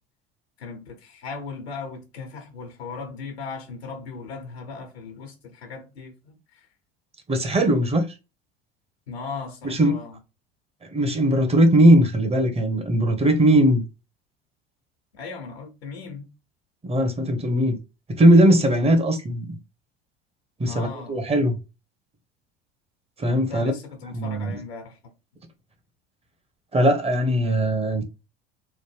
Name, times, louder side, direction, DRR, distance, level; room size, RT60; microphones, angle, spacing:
voice 1, 0.6-6.7 9.1-10.2 15.1-16.3 20.6-21.2 23.4-25.0, left 4 dB, 90° left, 0.9 m, -37 dB
voice 2, 7.3-8.0 9.6-10.0 10.9-13.8 16.8-17.8 18.2-19.6 20.6-21.5 23.2-23.7 24.1-24.5 26.7-28.0, right 1 dB, 20° right, 0.8 m, -19 dB
3.1 x 2.2 x 3.3 m
hypercardioid pair, 75°, 31 cm